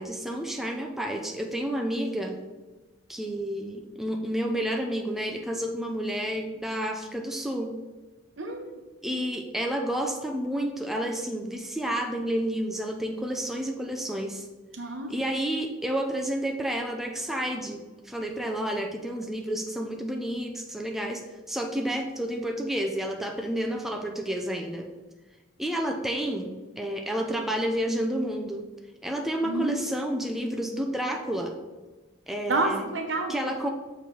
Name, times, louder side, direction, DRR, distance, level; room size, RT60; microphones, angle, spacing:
voice 1, 0.0-2.4 3.1-7.7 9.0-14.4 15.1-21.2 21.5-24.9 25.6-28.6 29.0-31.5 32.3-32.9 33.3-33.7, right 1 dB, ahead, 1 dB, 0.4 m, -30 dB
voice 2, 8.4-8.7 14.7-15.1 29.4-30.0 32.5-33.4, right 2 dB, 75° right, 3 dB, 1.0 m, -29 dB
6.5 x 4.6 x 3.8 m, 1.2 s
head